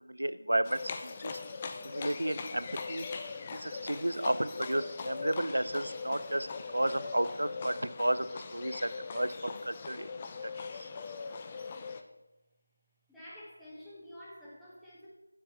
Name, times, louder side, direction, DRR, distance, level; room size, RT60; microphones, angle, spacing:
voice 1, 0.1-1.4 1.8-3.1 3.5-6.5 6.7-10.1 10.4-10.5 10.8-10.9, right 1 dB, 70° right, 13 dB, 0.6 m, -32 dB
Livestock farm animals working animals, 0.6-12.0, left 4 dB, 15° left, 0.5 m, -41 dB
voice 2, 13.1-15.1, equal, ahead, -10 dB, 1.4 m, -49 dB
7.4 x 7.2 x 7.6 m, 0.98 s
figure-of-eight pair, 170°, 0 cm